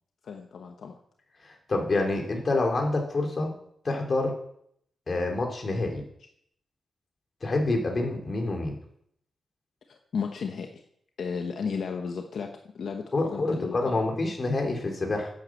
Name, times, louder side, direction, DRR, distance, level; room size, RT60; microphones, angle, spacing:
voice 1, 0.2-1.0 9.9-10.8 11.2-12.5 12.7-14.0, left 6 dB, 60° left, 4 dB, 1.2 m, -34 dB
voice 2, 1.4-3.5 3.8-4.3 5.1-6.0 7.4-8.8 13.1-15.3, left 2 dB, 30° left, 2 dB, 2.8 m, -27 dB
10.5 x 9.6 x 7.3 m, 0.69 s
wide cardioid pair, 160°, 0 cm